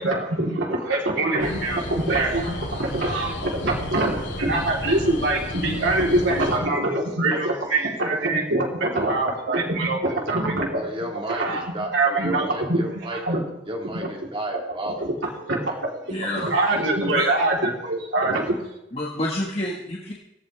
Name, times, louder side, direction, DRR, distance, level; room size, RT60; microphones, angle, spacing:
voice 1, 0.0-10.8 11.3-12.8 13.1-13.4 13.9-14.1 14.8-15.1 15.5-15.7 16.3-18.6, right 2 dB, 75° right, -1 dB, 3.8 m, -24 dB
sound 1, 1.4-6.6, left 1 dB, 85° left, 6.3 m, -32 dB
voice 2, 10.7-13.4 13.7-15.0 15.3-16.2 16.9-17.1, right 1 dB, 25° right, 2 dB, 1.9 m, -33 dB
voice 3, 16.1-16.5 17.1-17.4 18.9-20.1, left 1 dB, 30° left, -3 dB, 1.7 m, -28 dB
18.0 x 16.0 x 3.5 m, 0.86 s
head